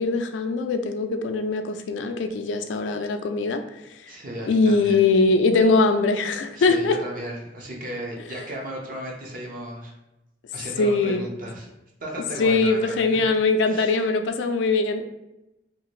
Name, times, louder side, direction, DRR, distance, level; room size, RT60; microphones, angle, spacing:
voice 1, 0.0-3.6 4.4-7.0 10.8-11.3 12.4-15.0, left 3 dB, 85° left, 7 dB, 0.3 m, -21 dB
voice 2, 4.1-5.0 6.5-9.9 10.5-11.7 12.0-13.2 13.7-14.0, right 1 dB, 50° right, -1 dB, 0.7 m, -35 dB
2.8 x 2.5 x 3.0 m, 0.93 s
head